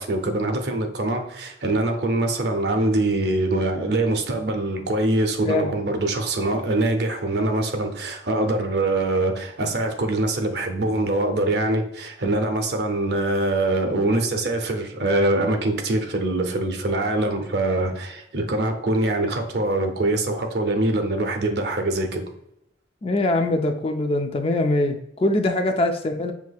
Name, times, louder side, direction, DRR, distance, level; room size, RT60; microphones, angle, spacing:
voice 1, 0.0-22.3, right 2 dB, 60° right, 4 dB, 0.6 m, -23 dB
voice 2, 5.4-5.8 23.0-26.3, left 2 dB, 30° left, 6 dB, 0.3 m, -23 dB
5.9 x 2.8 x 2.3 m, 0.78 s
head